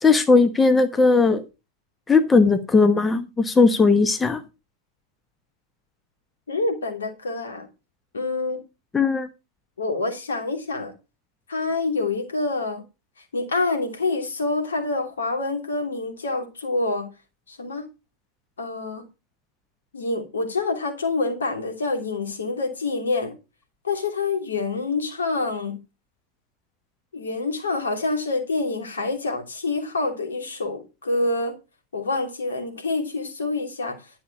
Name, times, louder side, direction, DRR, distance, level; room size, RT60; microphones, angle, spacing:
voice 1, 0.0-1.4 2.1-4.4 8.9-9.3, left 4 dB, 15° left, 1.1 m, -18 dB
voice 2, 6.5-7.7 8.1-8.6 9.8-10.9 11.5-12.8 13.3-17.1 17.5-17.8 18.6-19.0 19.9-23.3 23.8-25.8 27.1-31.5 31.9-34.0, left 3 dB, 70° left, 3.0 m, -26 dB
11.5 x 6.9 x 5.9 m
figure-of-eight pair, 90°, 0 cm